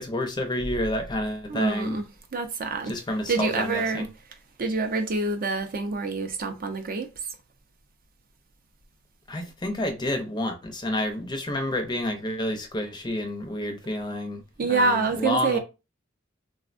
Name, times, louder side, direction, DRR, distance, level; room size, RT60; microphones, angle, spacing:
voice 1, 0.0-2.0 2.8-4.1 9.3-15.6, left 1 dB, 20° left, 0.5 m, -29 dB
voice 2, 1.5-2.0 2.3-2.9 3.3-4.1 4.6-7.1 14.6-15.6, right 3 dB, 45° right, 0.5 m, -26 dB
3.4 x 2.1 x 2.4 m
head